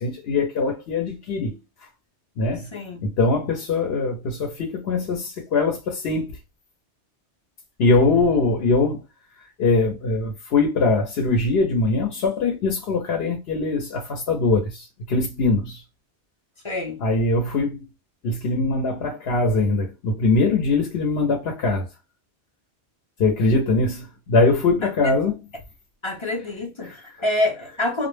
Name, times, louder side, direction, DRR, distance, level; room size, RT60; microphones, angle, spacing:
voice 1, 0.0-1.6 2.4-2.7 3.0-6.3 7.8-9.0 9.6-15.8 17.0-17.9 18.2-21.9 23.2-25.4 26.8-27.0, left 3 dB, 70° left, 0.9 m, -22 dB
voice 2, 2.7-3.0 16.6-17.0 24.8-24.9 26.0-28.1, left 2 dB, 35° left, 0.5 m, -26 dB
2.2 x 2.1 x 3.2 m
omnidirectional pair, 1.1 m